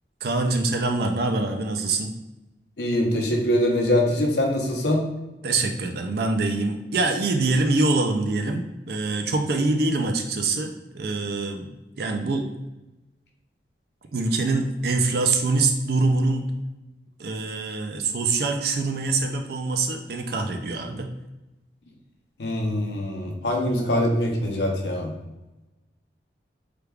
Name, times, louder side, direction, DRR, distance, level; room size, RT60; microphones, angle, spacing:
voice 1, 0.2-2.1 5.4-11.7 12.0-12.5 14.1-16.5 17.2-21.1, right 3 dB, 60° right, 5 dB, 0.4 m, -24 dB
voice 2, 2.8-5.1 22.4-25.1, left 1 dB, 80° left, 1 dB, 0.7 m, -23 dB
3.3 x 2.3 x 3.3 m, 1.0 s
head